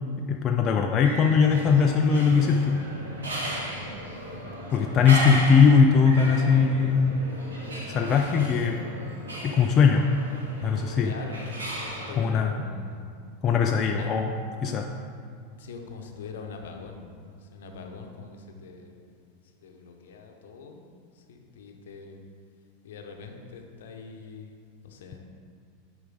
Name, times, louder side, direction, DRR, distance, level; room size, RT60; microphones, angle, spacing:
voice 1, 0.3-2.8 4.7-7.2 7.9-8.8 9.4-10.1 10.6-11.1 12.2-12.6 13.4-14.3 14.6-14.9, left 6 dB, 30° left, 3 dB, 0.5 m, -20 dB
sound 1, 1.0-12.1, equal, 75° right, 1.6 m, -35 dB
voice 2, 4.7-5.0 8.3-8.5 11.0-13.0 13.9-14.1 14.6-15.0 15.6-19.1 19.6-20.8 21.1-22.2 22.8-25.2, left 5 dB, 65° left, 3 dB, 0.9 m, -43 dB
9.8 x 5.0 x 3.9 m, 2.3 s
figure-of-eight pair, 85°, 0 cm